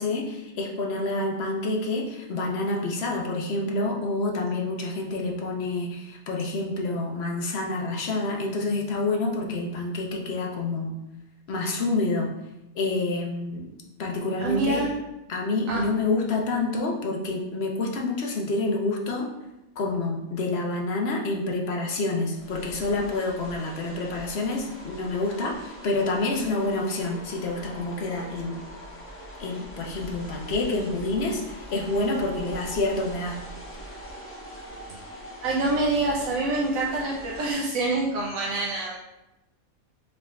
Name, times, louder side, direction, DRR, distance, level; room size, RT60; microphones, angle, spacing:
voice 1, 0.0-10.9 11.5-12.3 12.8-13.7 14.0-14.9 15.3-19.3 19.8-28.6 29.4-33.4, left 2 dB, 55° left, 1 dB, 0.8 m, -28 dB
voice 2, 14.4-15.0 15.7-15.8 34.9-35.0 35.4-39.0, right 2 dB, 75° right, -3 dB, 1.0 m, -26 dB
sound 1, 22.3-37.5, equal, 10° left, 0.8 m, -42 dB
4.9 x 3.4 x 2.3 m, 0.92 s
omnidirectional pair, 1.5 m